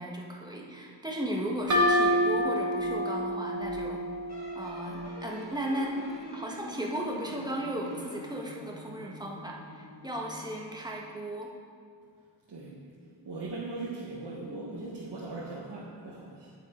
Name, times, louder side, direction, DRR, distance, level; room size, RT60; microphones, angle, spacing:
voice 1, 0.0-4.0 4.5-6.1 6.3-11.5, right 1 dB, 10° right, -2 dB, 1.6 m, -35 dB
sound 1, 1.7-5.3, equal, 40° right, 2.2 m, -28 dB
sound 2, 4.3-10.3, left 1 dB, 55° left, 2.5 m, -46 dB
voice 2, 13.2-16.5, right 2 dB, 65° right, -6 dB, 1.5 m, -39 dB
8.6 x 7.5 x 4.5 m, 2.2 s
cardioid pair, 70°, 44 cm